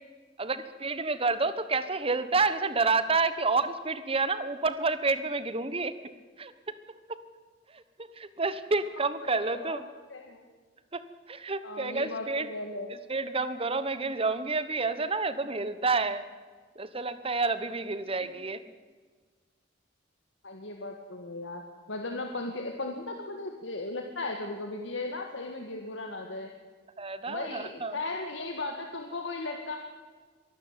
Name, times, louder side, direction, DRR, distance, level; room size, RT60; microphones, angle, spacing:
voice 1, 0.4-5.9 6.4-6.5 7.7-7.8 8.2-9.9 10.9-11.0 11.3-12.5 12.9-16.2 16.8-18.6 27.0-28.0, right 3 dB, 30° right, 13 dB, 1.2 m, -29 dB
voice 2, 9.2-10.4 11.6-13.0 18.2-18.4 20.4-21.6 21.9-26.5 27.3-29.8, left 2 dB, 80° left, 3 dB, 1.9 m, -37 dB
23.5 x 12.5 x 8.8 m, 1.5 s
head